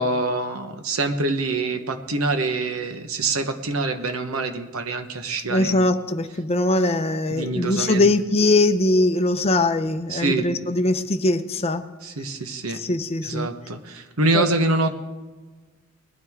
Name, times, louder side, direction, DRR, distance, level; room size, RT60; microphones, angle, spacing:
voice 1, 0.0-5.9 7.3-8.1 10.1-10.5 12.0-12.8 13.2-14.9, right 2 dB, 75° right, 8 dB, 1.1 m, -25 dB
voice 2, 5.5-11.8 12.7-13.5 14.3-14.5, left 2 dB, 30° left, 9 dB, 0.6 m, -21 dB
20.0 x 12.5 x 3.6 m, 1.3 s
head